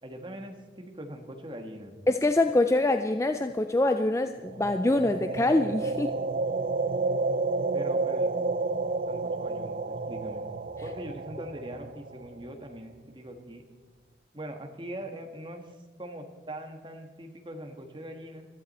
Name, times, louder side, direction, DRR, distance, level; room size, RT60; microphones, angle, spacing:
voice 1, 0.0-1.9 7.7-8.3 9.1-10.4 10.8-13.6 14.3-18.5, right 1 dB, 25° right, 4 dB, 1.5 m, -42 dB
voice 2, 2.1-6.1, left 2 dB, 15° left, 8 dB, 0.4 m, -24 dB
sound 1, 4.5-12.5, right 3 dB, 50° right, 0.4 m, -30 dB
21.5 x 14.0 x 4.3 m, 1.4 s
head